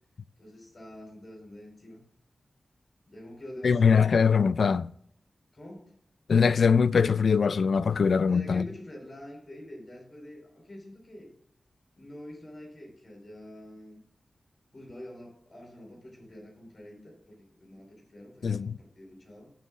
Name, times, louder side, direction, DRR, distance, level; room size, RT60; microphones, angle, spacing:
voice 1, 0.4-2.0 3.1-4.1 5.5-6.0 8.3-11.3 12.0-14.0 14.7-19.5, left 1 dB, 50° left, 4.5 m, -46 dB
voice 2, 3.6-4.9 6.3-8.7 18.4-18.8, left 6 dB, 80° left, 0.3 m, -22 dB
18.0 x 7.2 x 2.5 m
cardioid pair, 55°, 0 cm